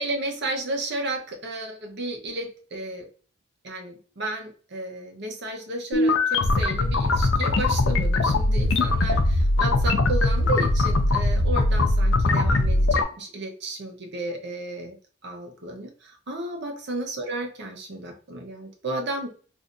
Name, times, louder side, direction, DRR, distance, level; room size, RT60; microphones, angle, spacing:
voice 1, 0.0-3.1 3.6-15.0 15.2-19.3, right 2 dB, 60° right, 2 dB, 0.8 m, -33 dB
sound 1, 5.9-13.0, left 2 dB, 70° left, 0.5 m, -21 dB
3.3 x 2.6 x 2.5 m, 0.40 s
head